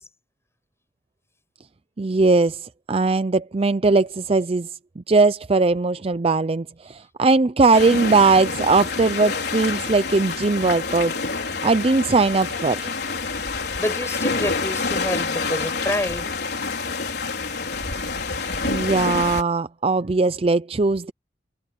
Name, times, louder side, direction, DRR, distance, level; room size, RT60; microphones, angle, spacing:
voice 1, 2.0-4.7 5.0-11.2 11.6-12.9 18.7-21.1, right 3 dB, 30° right, 0.5 m, -19 dB
sound 1, 7.7-19.4, left 4 dB, 65° left, 4.6 m, -27 dB
voice 2, 13.8-16.4, left 1 dB, 15° left, 7.7 m, -27 dB
head